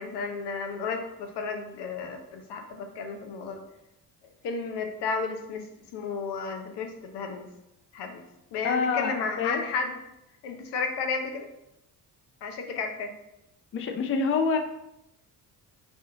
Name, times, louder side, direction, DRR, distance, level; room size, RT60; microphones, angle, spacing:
voice 1, 0.0-3.6 4.4-5.7 5.9-7.5 7.9-8.2 8.5-10.0 10.4-11.5 12.4-13.1, left 5 dB, 75° left, 5 dB, 0.8 m, -32 dB
voice 2, 8.6-9.6 13.7-14.6, left 5 dB, 30° left, 6 dB, 0.5 m, -26 dB
4.9 x 2.6 x 3.7 m, 0.86 s
cardioid pair, 80°, 41 cm